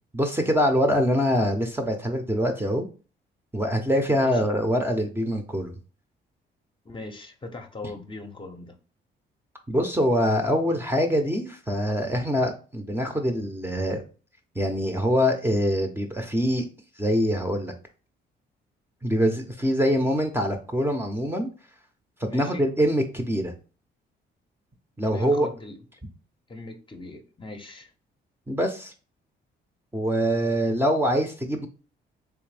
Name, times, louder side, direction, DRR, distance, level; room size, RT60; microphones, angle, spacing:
voice 1, 0.1-2.9 3.5-5.7 9.7-14.0 14.6-16.7 17.0-17.7 19.0-21.5 22.2-23.5 25.0-25.5 28.5-28.9 29.9-31.7, equal, 10° right, 0.7 m, -24 dB
voice 2, 4.1-4.5 6.8-8.8 22.3-22.7 24.9-25.8 26.5-27.9, left 2 dB, 25° left, 0.7 m, -40 dB
3.5 x 3.2 x 3.2 m
cardioid pair, 90°, 20 cm